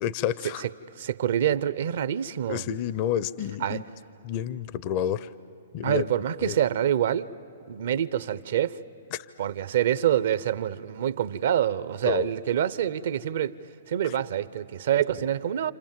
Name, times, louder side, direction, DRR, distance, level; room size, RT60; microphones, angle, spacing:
voice 1, 0.0-0.6 2.5-3.8 4.2-5.3 5.7-6.1 6.4-6.6 9.1-9.3 12.0-12.3 14.0-14.2 15.1-15.2, left 10 dB, 40° left, 0.6 m, -29 dB
voice 2, 1.0-2.7 3.6-3.8 5.8-7.3 7.7-8.8 9.4-13.5 13.9-15.7, right 10 dB, 65° right, 0.7 m, -26 dB
29.5 x 27.0 x 7.5 m
hypercardioid pair, 125°, 0 cm